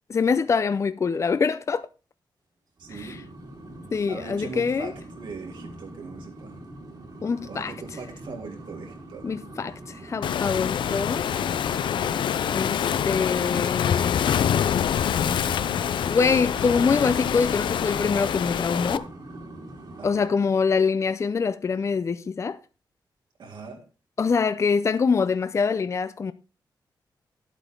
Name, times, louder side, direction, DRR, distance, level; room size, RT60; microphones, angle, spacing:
voice 1, 0.1-1.9 2.9-3.2 3.9-4.9 7.2-7.7 9.2-11.2 12.5-14.5 16.1-19.1 20.0-22.6 24.2-26.3, left 5 dB, 40° left, 0.5 m, -24 dB
sound 1, 2.8-13.9 15.0-20.1, right 1 dB, 55° right, 2.9 m, -43 dB
voice 2, 2.8-3.3 4.1-6.6 7.5-9.2 20.0-20.3 23.4-23.8, right 4 dB, 75° right, 3.1 m, -40 dB
Waves surf, 10.2-19.0, left 9 dB, 90° left, 0.5 m, -25 dB
11.5 x 8.3 x 3.8 m
wide cardioid pair, 120°, 8 cm